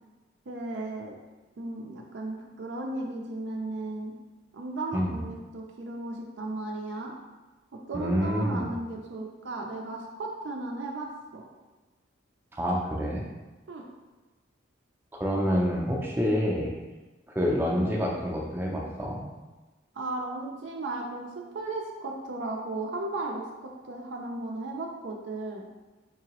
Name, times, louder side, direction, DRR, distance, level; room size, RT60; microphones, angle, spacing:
voice 1, 0.5-1.2 1.6-4.1 4.5-7.1 7.7-11.4 13.7-13.9 19.9-25.6, right 2 dB, 65° right, 0 dB, 0.4 m, -35 dB
voice 2, 7.9-8.6 12.5-13.3 15.1-16.7 17.3-19.3, equal, 10° right, -2 dB, 0.5 m, -27 dB
4.5 x 2.9 x 2.9 m, 1.2 s
head